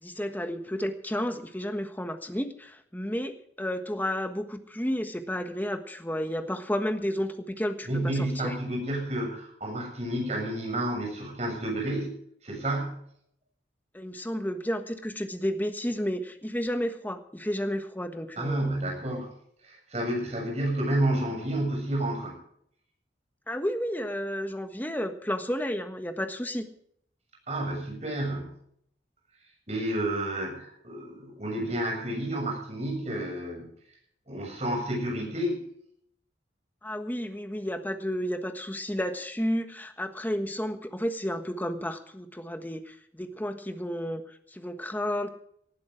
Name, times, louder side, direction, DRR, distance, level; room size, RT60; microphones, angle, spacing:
voice 1, 0.0-8.6 13.9-18.7 23.5-26.7 36.8-45.3, equal, 10° left, 7 dB, 1.4 m, -32 dB
voice 2, 7.9-12.1 12.4-13.0 18.4-19.3 19.6-22.4 27.5-28.5 29.7-33.7 34.3-35.6, right 1 dB, 40° right, 1 dB, 7.4 m, -30 dB
19.0 x 12.0 x 5.0 m, 0.68 s
head